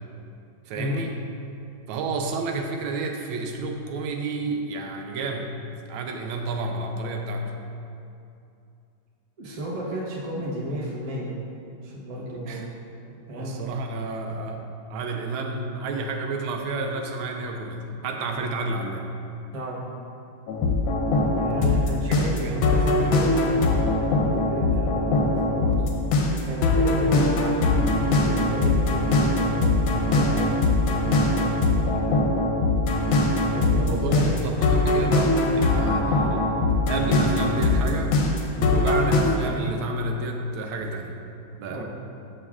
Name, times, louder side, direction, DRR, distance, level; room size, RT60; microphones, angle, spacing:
voice 1, 0.7-1.1 1.9-5.5 5.9-7.5 12.5-12.7 13.1-19.1 22.2-23.1 33.8-36.3 36.9-38.1 38.6-41.2 41.5-41.8, right 2 dB, 85° right, 3 dB, 1.4 m, -30 dB
voice 2, 9.4-11.3 11.8-12.7 13.3-13.6 19.5-19.8 21.3-23.4 23.9-25.8 26.1-32.1 33.5-34.5 35.8-36.1 41.7-41.8, equal, 40° right, -5 dB, 0.5 m, -33 dB
sound 1, 20.5-39.2, left 2 dB, 85° left, 1.5 m, -22 dB
7.8 x 5.4 x 2.4 m, 2.6 s
omnidirectional pair, 2.2 m